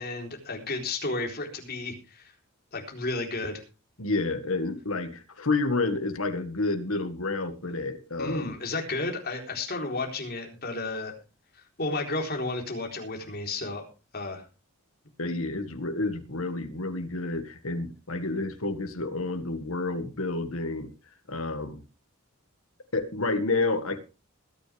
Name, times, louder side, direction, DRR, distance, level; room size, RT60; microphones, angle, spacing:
voice 1, 0.0-2.3 2.7-3.6 8.2-11.1 11.8-13.9 14.1-14.4, left 2 dB, 45° left, 2 dB, 4.0 m, -32 dB
voice 2, 4.0-8.5 15.2-20.9 21.3-21.8 22.9-24.0, left 3 dB, 70° left, 8 dB, 1.8 m, -29 dB
21.0 x 9.8 x 3.5 m, 0.32 s
head